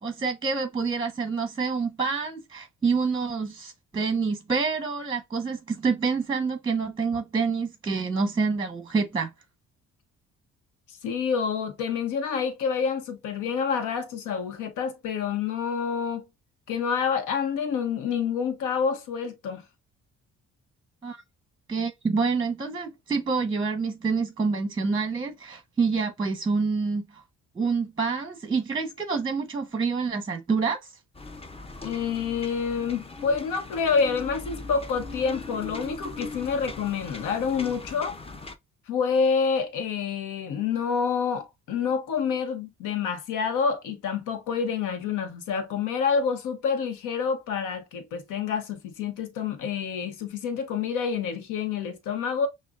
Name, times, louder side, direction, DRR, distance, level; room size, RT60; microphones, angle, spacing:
voice 1, 0.0-9.3 21.0-21.2 21.7-27.2 27.5-30.9, right 4 dB, 15° right, 0.9 m, -27 dB
voice 2, 10.9-16.3 16.7-19.6 31.8-38.2 38.9-52.5, left 6 dB, 85° left, 0.9 m, -28 dB
sound 1, 31.1-38.5, left 3 dB, 20° left, 0.6 m, -39 dB
6.0 x 2.2 x 2.4 m
cardioid pair, 90°, 30 cm